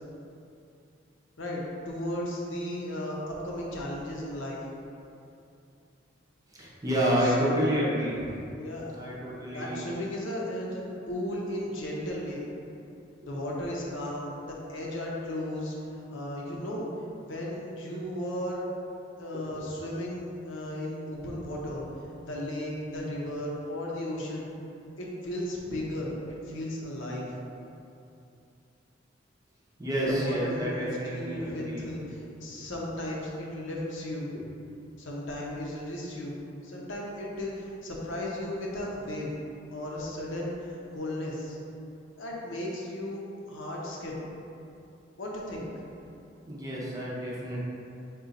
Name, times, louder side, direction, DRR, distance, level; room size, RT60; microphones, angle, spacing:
voice 1, 1.4-4.6 7.2-7.7 8.6-9.0 9.5-12.4 13.2-15.8 16.1-16.9 17.3-18.6 19.2-21.8 22.3-24.5 25.0-26.1 26.4-27.2 30.1-34.3 35.0-36.4 36.6-39.3 39.7-41.6 42.2-43.2 43.5-44.1 45.2-45.7, left 1 dB, 80° left, -4 dB, 0.7 m, -35 dB
voice 2, 6.5-8.4 8.8-9.8 19.5-19.6 29.8-31.9 32.1-32.2 46.4-47.6, equal, 20° right, -6 dB, 0.7 m, -29 dB
3.8 x 2.4 x 4.0 m, 2.6 s
head